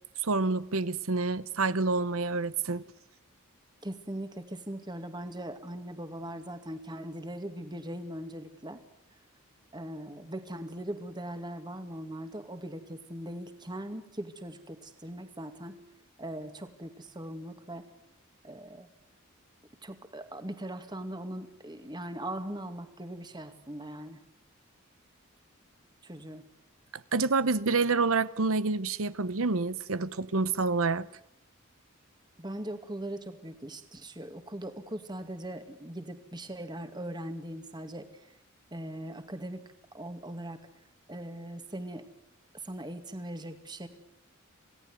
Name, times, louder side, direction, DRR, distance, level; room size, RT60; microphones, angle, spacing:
voice 1, 0.2-2.8 26.9-31.1, right 3 dB, 75° right, 0.9 m, -28 dB
voice 2, 3.8-8.8 9.7-15.8 16.2-17.9 18.4-18.9 19.8-24.2 26.0-26.4 32.4-38.4 38.7-39.6 39.9-40.6 41.1-42.1 42.5-43.9, right 1 dB, 20° right, 2.2 m, -40 dB
27.5 x 18.0 x 9.4 m
head